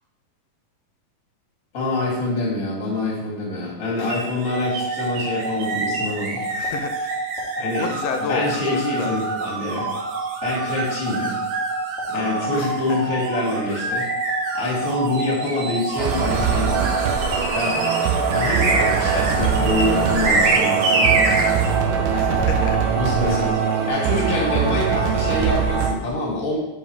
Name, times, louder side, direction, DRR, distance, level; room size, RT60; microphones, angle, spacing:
voice 1, 1.7-6.4 7.6-7.9 8.3-9.9 10.4-11.4 12.1-14.1 14.5-17.0 17.5-17.9 18.3-21.6 23.0-23.6 23.9-26.6, left 2 dB, 30° left, -3 dB, 1.8 m, -25 dB
sound 1, 4.1-21.8, right 2 dB, 60° right, 2.1 m, -27 dB
sound 2, 4.5-23.9, right 2 dB, 25° right, 2.2 m, -28 dB
voice 2, 6.5-7.2 7.8-9.1 12.1-13.0 13.7-13.8 22.1-22.8 23.2-23.5, left 6 dB, 80° left, 5 dB, 2.2 m, -32 dB
sound 3, 16.0-26.0, right 7 dB, 80° right, 2.2 m, -22 dB
9.4 x 4.8 x 3.2 m, 0.91 s
omnidirectional pair, 4.0 m